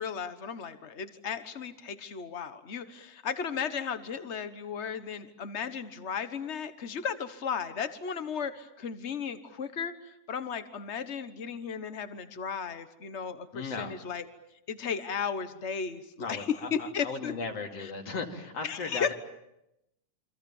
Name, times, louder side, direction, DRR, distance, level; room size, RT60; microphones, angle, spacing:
voice 1, 0.0-9.9 10.3-14.3 14.7-17.3 17.8-17.9 18.6-19.1, left 6 dB, 75° left, 11 dB, 0.6 m, -35 dB
voice 2, 13.5-14.0 16.2-19.1, left 4 dB, 60° left, 3 dB, 3.5 m, -37 dB
29.0 x 25.5 x 7.2 m, 0.85 s
omnidirectional pair, 3.3 m